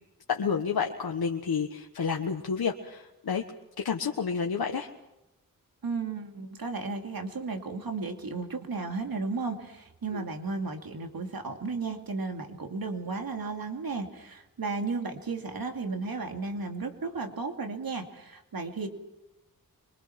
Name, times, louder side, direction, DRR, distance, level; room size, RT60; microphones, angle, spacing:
voice 1, 0.3-3.4 3.8-4.9 10.1-10.2, left 6 dB, 85° left, 2 dB, 1.5 m, -30 dB
voice 2, 5.8-18.9, right 4 dB, 75° right, 5 dB, 2.7 m, -34 dB
26.5 x 23.5 x 5.9 m, 0.93 s
wide cardioid pair, 65°, 36 cm